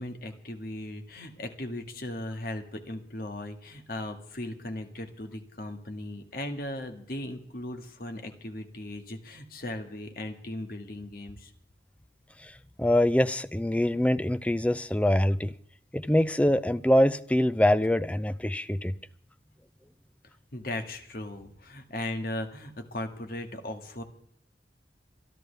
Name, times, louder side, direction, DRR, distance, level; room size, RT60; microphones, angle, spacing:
voice 1, 0.0-11.5 20.5-24.0, left 1 dB, 55° left, 5 dB, 1.8 m, -37 dB
voice 2, 12.8-15.5 15.9-18.9, left 1 dB, 10° left, 14 dB, 0.4 m, -24 dB
27.0 x 10.5 x 3.4 m, 0.66 s
head